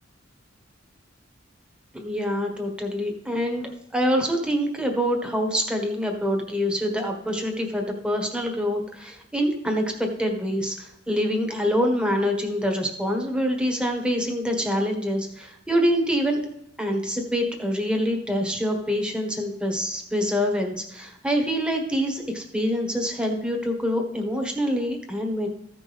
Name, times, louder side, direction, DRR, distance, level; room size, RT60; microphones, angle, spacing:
voice 1, 1.9-16.4 16.8-25.5, equal, 5° right, 2 dB, 1.5 m, -25 dB
15.0 x 6.0 x 3.5 m, 0.77 s
head